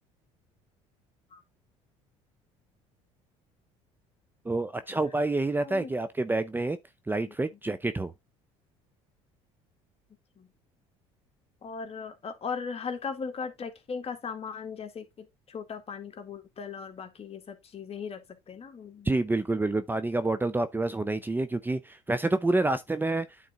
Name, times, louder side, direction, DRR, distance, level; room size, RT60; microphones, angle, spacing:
voice 1, 4.4-6.8 7.1-8.1 19.0-23.3, right 2 dB, 10° right, 0.7 m, -28 dB
voice 2, 11.6-18.2 18.5-19.1, left 5 dB, 40° left, 1.9 m, -38 dB
9.2 x 3.9 x 3.6 m
hypercardioid pair, 75°, 16 cm